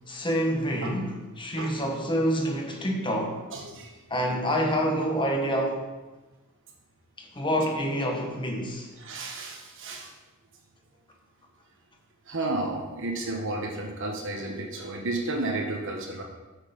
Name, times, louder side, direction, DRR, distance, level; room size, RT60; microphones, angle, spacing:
voice 1, 0.1-3.4 4.1-5.8 7.2-8.9, equal, 20° left, 1 dB, 1.4 m, -27 dB
voice 2, 3.5-4.0 9.0-10.1 12.3-16.2, right 2 dB, 60° right, 2 dB, 1.3 m, -32 dB
8.2 x 6.6 x 5.3 m, 1.2 s
head